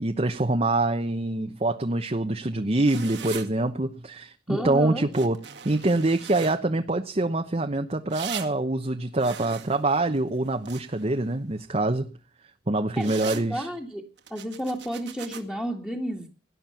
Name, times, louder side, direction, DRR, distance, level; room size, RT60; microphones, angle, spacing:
voice 1, 0.0-5.4 5.6-12.0 12.7-13.7, right 2 dB, 35° right, 1.0 m, -25 dB
sound 1, 2.8-3.5 5.1-6.6 8.1-8.5 9.2-11.1 13.0-13.4 14.2-15.4, right 8 dB, 80° right, 2.1 m, -39 dB
voice 2, 4.5-5.1 13.0-14.0 14.3-16.3, equal, 10° left, 2.1 m, -32 dB
18.5 x 11.0 x 5.8 m
head